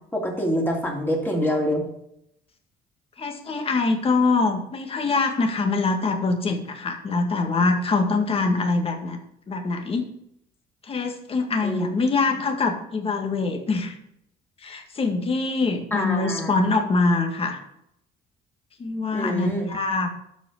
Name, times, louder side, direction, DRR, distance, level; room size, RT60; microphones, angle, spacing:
voice 1, 0.1-1.8 11.6-12.0 15.9-16.6 19.1-19.7, equal, 10° left, -1 dB, 2.9 m, -26 dB
voice 2, 3.2-9.2 9.5-10.0 10.8-13.9 14.6-17.6 18.8-20.1, left 3 dB, 35° left, 4 dB, 1.9 m, -24 dB
12.0 x 5.2 x 5.4 m, 0.76 s
cardioid pair, 110°, 17 cm